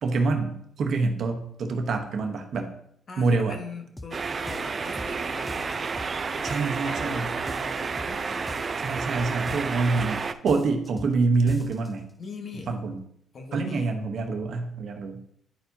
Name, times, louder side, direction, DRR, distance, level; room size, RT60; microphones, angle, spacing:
voice 1, 0.0-2.7 3.2-3.6 6.4-7.3 8.8-12.1 12.7-13.0 13.5-15.2, right 3 dB, 60° right, 4 dB, 1.0 m, -26 dB
voice 2, 3.1-5.9 6.3-8.9 12.2-12.8 13.3-13.9, left 4 dB, 50° left, 4 dB, 1.2 m, -41 dB
sound 1, 4.0-4.2 4.5-5.2 5.5-6.2 6.5-7.2 7.5-8.2 8.5-9.2 9.5-10.2 10.5-11.2 11.5-11.9, left 1 dB, 10° left, 0.6 m, -41 dB
sound 2, 4.1-10.3, right 5 dB, 40° right, 0.4 m, -31 dB
10.5 x 4.4 x 2.8 m, 0.71 s
cardioid pair, 90°, 0 cm